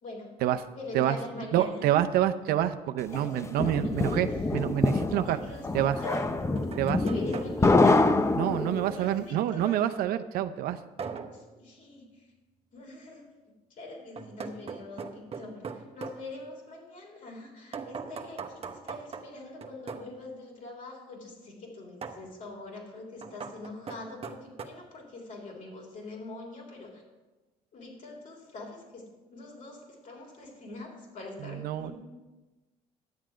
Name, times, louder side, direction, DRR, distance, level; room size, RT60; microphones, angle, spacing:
voice 1, 0.0-0.3 0.8-1.8 3.1-4.2 5.2-6.3 7.0-8.1 8.8-9.8 11.3-12.0 12.7-13.2 13.7-27.0 27.7-31.9, left 2 dB, 55° left, 0 dB, 3.4 m, -43 dB
voice 2, 1.5-5.4 5.7-6.0 6.8-7.0 8.4-10.8 31.4-31.9, right 12 dB, 75° right, 10 dB, 0.6 m, -27 dB
sound 1, 3.1-9.0, left 3 dB, 20° left, 0.7 m, -26 dB
sound 2, 6.3-8.1 11.0-11.5 14.2-16.2 17.7-20.1 22.0-22.3 23.2-24.6, right 5 dB, 40° right, 0.9 m, -41 dB
10.5 x 7.4 x 5.0 m, 1.2 s
supercardioid pair, 75°, 16 cm